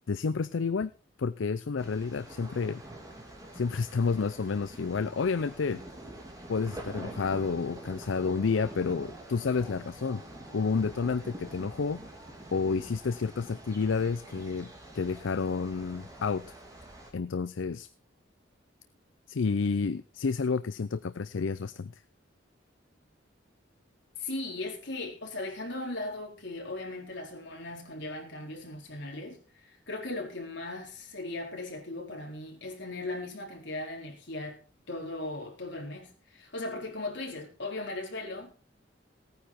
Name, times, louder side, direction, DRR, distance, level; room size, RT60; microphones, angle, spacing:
voice 1, 0.1-0.9 1.2-2.8 3.5-5.8 6.5-10.2 10.5-12.0 12.5-16.5 17.1-17.9 19.3-21.9, left 5 dB, 80° left, 0.5 m, -30 dB
sound 1, 1.8-17.1, right 1 dB, 20° right, 3.6 m, -46 dB
voice 2, 24.2-34.6 34.9-38.6, left 2 dB, 65° left, 4.0 m, -38 dB
16.5 x 9.6 x 4.3 m
head